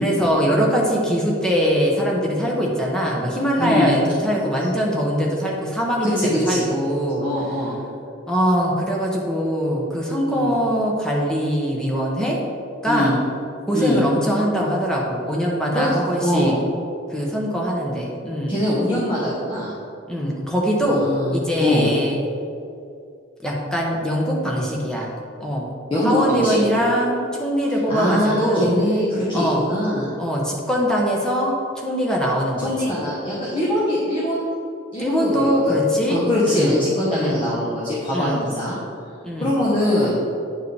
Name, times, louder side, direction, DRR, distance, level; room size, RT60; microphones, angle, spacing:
voice 1, 0.0-7.2 8.3-12.4 12.8-13.1 13.7-16.5 17.1-18.6 20.1-21.0 21.3-22.2 23.4-25.1 25.4-25.7 26.0-28.7 29.3-29.6 30.2-32.7 35.0-36.2 36.5-36.8 37.1-37.4 38.1-38.4 39.2-39.5, equal, 5° left, -3 dB, 0.9 m, -22 dB
voice 2, 3.6-3.9 6.0-6.7 7.2-7.7 10.3-10.5 12.9-13.2 13.7-14.0 15.7-15.9 16.2-16.6 18.5-19.7 20.9-21.9 25.9-26.6 27.9-30.1 32.6-34.5 34.9-35.8 36.1-38.8 39.4-40.2, left 1 dB, 25° left, -7 dB, 1.1 m, -22 dB
9.5 x 4.6 x 3.4 m, 2.5 s
head